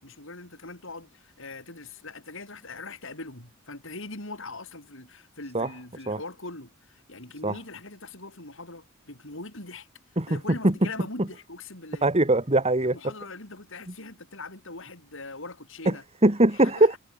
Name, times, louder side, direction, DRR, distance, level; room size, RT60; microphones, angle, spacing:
voice 1, 0.0-9.9 10.3-12.1 12.8-16.0 16.5-17.0, left 3 dB, 65° left, 7.2 m, -41 dB
voice 2, 10.2-10.7 12.0-13.0 15.9-16.0 16.2-17.0, right 2 dB, 30° right, 2.2 m, -21 dB
head